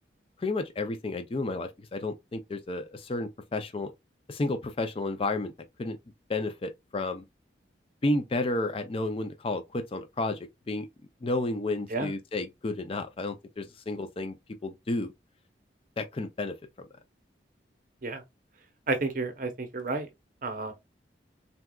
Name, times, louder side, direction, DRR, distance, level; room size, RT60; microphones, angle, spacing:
voice 1, 0.4-3.9 4.3-5.5 5.8-6.0 6.3-7.2 8.0-10.9 11.2-14.4 14.6-15.1 16.0-16.9, left 2 dB, 30° left, 0.4 m, -31 dB
voice 2, 18.9-20.1 20.4-20.7, right 3 dB, 50° right, 0.8 m, -31 dB
3.9 x 2.3 x 2.2 m
head